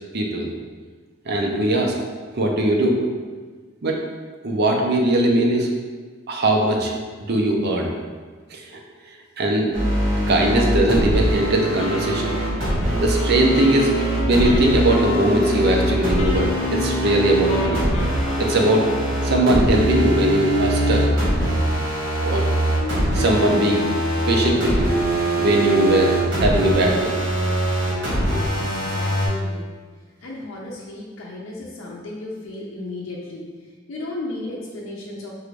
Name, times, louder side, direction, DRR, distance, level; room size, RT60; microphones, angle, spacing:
voice 1, 0.1-0.5 1.3-1.9 2.4-3.0 3.8-4.0 4.4-5.7 6.3-6.9 7.3-7.9 8.5-8.8 9.4-9.7 10.3-12.3 13.0-13.9 14.2-17.8 18.4-18.9 19.2-21.1 22.2-22.5 23.1-23.8 24.3-24.9 25.4-27.1, right 1 dB, 55° right, 1 dB, 0.6 m, -20 dB
sound 1, 9.7-29.3, right 1 dB, 85° right, 1.5 m, -22 dB
Wind instrument woodwind instrument, 11.8-18.9, left 2 dB, 35° left, 0.5 m, -34 dB
voice 2, 28.4-29.7 30.2-33.5 33.9-35.3, left 2 dB, 80° left, -4 dB, 0.5 m, -34 dB
4.7 x 2.5 x 3.2 m, 1.5 s
head